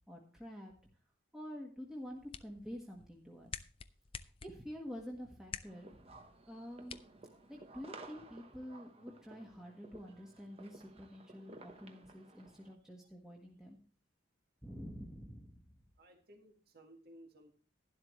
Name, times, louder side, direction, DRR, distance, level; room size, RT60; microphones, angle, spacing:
voice 1, 0.1-0.7 1.3-3.5 4.4-7.0 7.5-13.8 14.6-15.6, equal, 5° right, -1 dB, 1.5 m, -48 dB
sound 1, 1.9-7.9, left 6 dB, 30° left, 0.5 m, -51 dB
sound 2, 5.7-12.7, right 2 dB, 30° right, 1.0 m, -55 dB
voice 2, 16.0-17.5, right 1 dB, 50° right, 3 dB, 1.7 m, -58 dB
12.0 x 11.5 x 3.2 m, 0.40 s
head